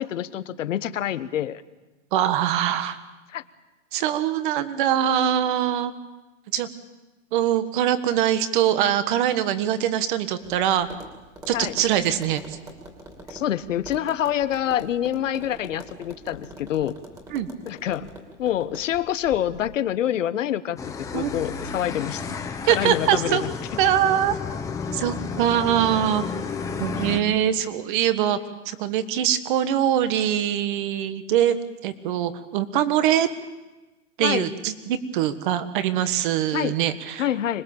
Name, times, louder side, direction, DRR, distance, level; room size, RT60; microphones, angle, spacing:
voice 1, 0.0-1.6 3.3-3.4 11.5-11.8 13.3-17.0 17.6-18.1 18.4-22.4 22.7-23.5 34.2-34.5 36.5-36.8 37.2-37.6, left 11 dB, 80° left, 12 dB, 1.3 m, -26 dB
voice 2, 2.1-3.0 3.9-5.9 6.5-6.7 7.3-10.9 11.5-12.6 17.3-17.5 21.1-21.3 22.7-23.4 23.8-24.3 24.9-26.2 26.8-28.4 28.6-31.6 31.8-33.3 34.2-37.2, right 10 dB, 40° right, 12 dB, 1.5 m, -23 dB
Tap, 10.4-19.7, right 1 dB, 10° right, 2.7 m, -44 dB
sound 1, 20.8-27.2, left 5 dB, 10° left, 1.0 m, -32 dB
25.5 x 20.5 x 7.2 m, 1.1 s
hypercardioid pair, 160°, 38 cm